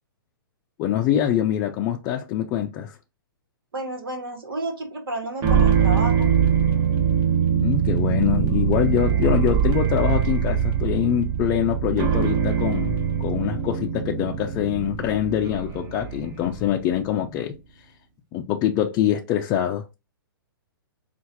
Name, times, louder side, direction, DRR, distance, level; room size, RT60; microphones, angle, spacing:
voice 1, 0.8-3.0 7.6-17.6 18.3-19.8, left 11 dB, 30° left, 0.4 m, -24 dB
voice 2, 3.7-6.3, right 2 dB, 75° right, 1.4 m, -31 dB
sound 1, 5.4-16.8, right 8 dB, 30° right, 1.1 m, -22 dB
5.6 x 2.5 x 2.7 m
hypercardioid pair, 130°, 12 cm